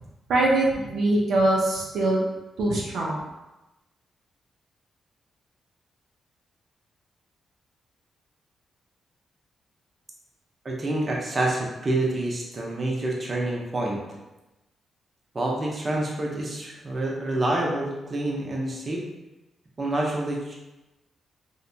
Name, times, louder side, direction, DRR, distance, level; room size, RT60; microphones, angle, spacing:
voice 1, 0.3-2.2 2.6-3.2, right 2 dB, 80° right, -4 dB, 0.4 m, -22 dB
voice 2, 10.6-14.0 15.3-19.0 19.8-20.5, right 1 dB, 40° right, -2 dB, 0.7 m, -27 dB
2.7 x 2.1 x 2.6 m, 1.0 s
cardioid pair, 65°, 0 cm